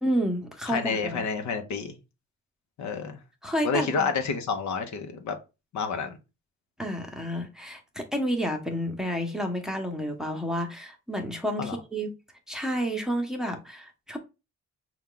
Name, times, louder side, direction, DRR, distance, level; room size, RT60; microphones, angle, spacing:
voice 1, 0.0-1.2 3.4-4.1 6.8-12.1 12.5-14.2, equal, ahead, 0.9 m, -30 dB
voice 2, 0.7-2.0 2.8-3.2 3.6-5.4 5.7-6.2 11.6-11.8, left 5 dB, 65° left, 0.9 m, -29 dB
4.3 x 2.4 x 3.8 m
cardioid pair, 90°, 30 cm